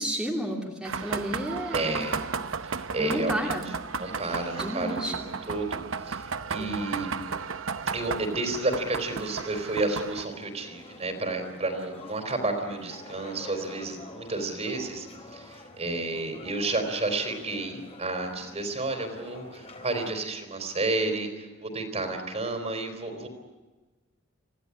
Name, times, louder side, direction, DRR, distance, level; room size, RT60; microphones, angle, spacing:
voice 1, 0.0-2.1 3.0-3.7 4.6-5.3 6.6-6.9, right 1 dB, 5° right, -3 dB, 2.9 m, -31 dB
sound 1, 0.8-10.2, right 5 dB, 85° right, 0.8 m, -34 dB
voice 2, 1.7-2.2 2.6-5.2 5.5-7.1 7.9-15.1 15.3-23.3, right 2 dB, 35° right, 5 dB, 4.1 m, -31 dB
sound 2, 8.4-20.1, left 2 dB, 30° left, 3.6 m, -48 dB
26.5 x 16.5 x 9.9 m, 1.2 s
head